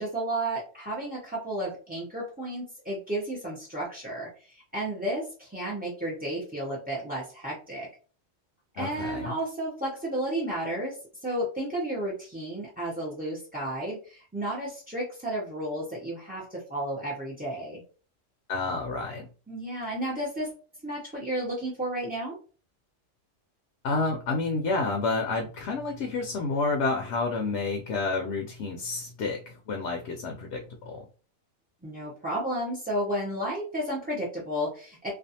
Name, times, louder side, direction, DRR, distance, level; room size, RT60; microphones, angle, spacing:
voice 1, 0.0-7.9 8.7-17.8 19.5-20.5 20.8-22.4 31.8-35.1, right 1 dB, 10° right, -5 dB, 0.4 m, -32 dB
voice 2, 8.8-9.4 18.5-19.3 23.8-31.0, left 3 dB, 65° left, 1 dB, 0.8 m, -29 dB
2.5 x 2.3 x 2.7 m, 0.38 s
omnidirectional pair, 1.4 m